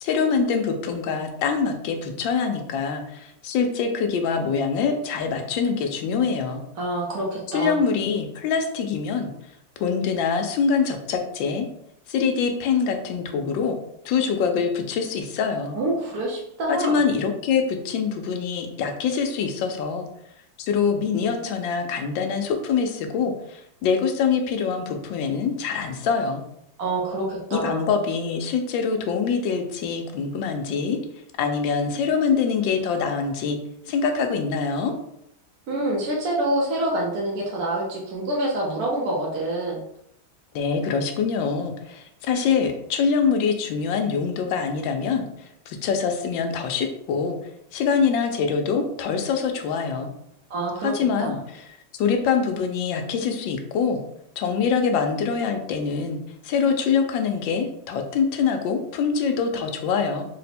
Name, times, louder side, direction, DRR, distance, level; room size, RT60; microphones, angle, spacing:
voice 1, 0.0-6.6 7.5-9.3 9.8-11.7 12.1-13.8 14.0-15.8 16.7-20.1 20.6-26.4 27.5-31.0 31.4-33.6 33.9-34.9 40.5-45.2 45.7-47.4 47.7-50.1 50.8-51.4 51.9-54.0 54.4-56.2 56.4-60.3, left 6 dB, 80° left, 5 dB, 1.3 m, -24 dB
voice 2, 6.8-7.8 15.7-17.0 26.8-27.8 35.7-39.8 50.5-50.9 51.2-51.3, right 1 dB, 60° right, -4 dB, 1.1 m, -26 dB
4.0 x 2.1 x 4.2 m, 0.75 s
omnidirectional pair, 2.1 m